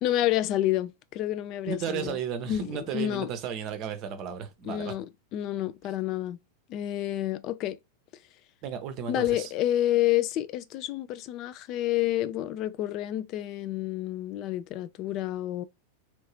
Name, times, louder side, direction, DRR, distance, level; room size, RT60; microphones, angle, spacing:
voice 1, 0.0-2.2 2.5-3.3 4.6-5.1 5.3-6.4 6.7-7.8 9.1-15.6, left 13 dB, 40° left, 0.3 m, -29 dB
voice 2, 1.6-4.9 8.6-9.5, right 7 dB, 40° right, 0.7 m, -34 dB
3.1 x 2.7 x 3.1 m
figure-of-eight pair, 90°, 0 cm